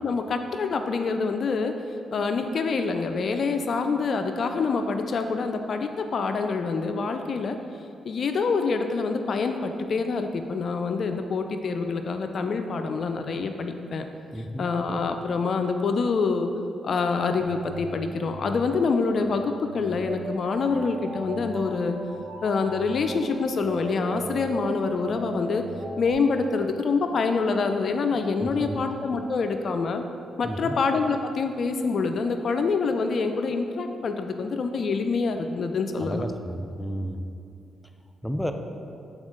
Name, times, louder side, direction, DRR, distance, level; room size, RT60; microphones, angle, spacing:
voice 1, 0.0-1.8 2.1-7.6 8.1-14.1 14.6-16.5 16.8-22.0 22.4-25.7 26.0-30.0 30.4-36.2, left 4 dB, 60° left, 7 dB, 0.4 m, -26 dB
voice 2, 14.3-14.7 28.4-28.8 30.4-30.8 36.0-37.3 38.2-38.5, equal, 5° left, 6 dB, 0.5 m, -32 dB
sound 1, 17.4-26.1, right 2 dB, 70° right, 0.9 m, -38 dB
8.0 x 4.3 x 3.7 m, 2.5 s
supercardioid pair, 60°, 0 cm